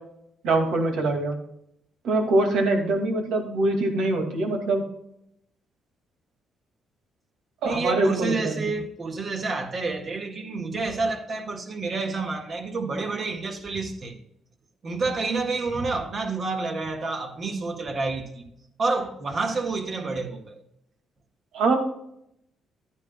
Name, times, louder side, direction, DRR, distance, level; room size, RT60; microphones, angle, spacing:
voice 1, 0.4-1.4 2.0-4.8 7.6-8.6 21.5-21.8, right 2 dB, 80° right, 2.3 m, -23 dB
voice 2, 7.6-14.1 14.8-18.4 18.8-20.6, right 3 dB, 45° right, 1.8 m, -29 dB
11.5 x 9.6 x 2.3 m
cardioid pair, 90°, 0 cm